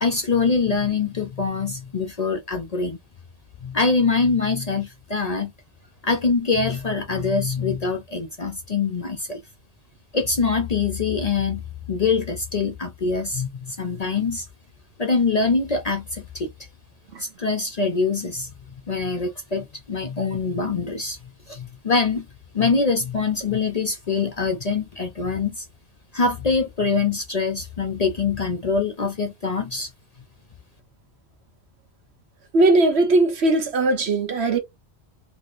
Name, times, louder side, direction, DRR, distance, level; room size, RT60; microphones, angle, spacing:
voice 1, 0.0-3.0 3.6-5.5 6.0-9.4 10.1-14.4 15.0-16.5 17.2-18.5 18.9-21.2 21.5-22.3 22.5-25.6 26.1-29.9, left 4 dB, 45° left, 0.6 m, -24 dB
voice 2, 32.5-34.6, right 2 dB, 70° right, 1.2 m, -19 dB
3.1 x 3.1 x 2.5 m
omnidirectional pair, 1.2 m